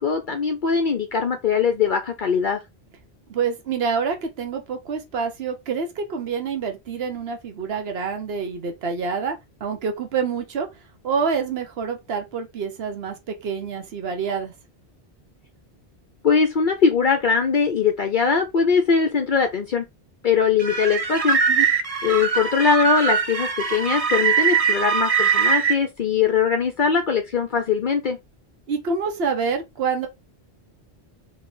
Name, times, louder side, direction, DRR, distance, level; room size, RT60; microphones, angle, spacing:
voice 1, 0.0-2.6 16.2-19.8 20.2-21.4 22.0-28.2, left 6 dB, 55° left, 0.8 m, -21 dB
voice 2, 3.3-10.7 11.0-14.5 21.5-21.7 28.7-30.1, right 5 dB, 70° right, 1.2 m, -27 dB
sound 1, 20.6-25.8, right 6 dB, 40° right, 0.8 m, -21 dB
4.1 x 3.2 x 3.8 m
omnidirectional pair, 1.1 m